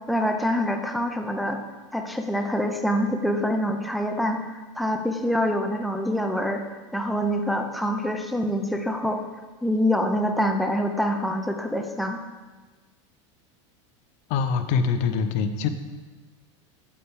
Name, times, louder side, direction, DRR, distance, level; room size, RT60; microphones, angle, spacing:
voice 1, 0.1-1.6 1.9-6.6 6.9-9.2 9.6-12.2, equal, ahead, 4 dB, 0.6 m, -25 dB
voice 2, 14.3-15.7, left 6 dB, 50° left, 9 dB, 0.8 m, -24 dB
8.5 x 8.5 x 3.7 m, 1.3 s
supercardioid pair, 135°, 16 cm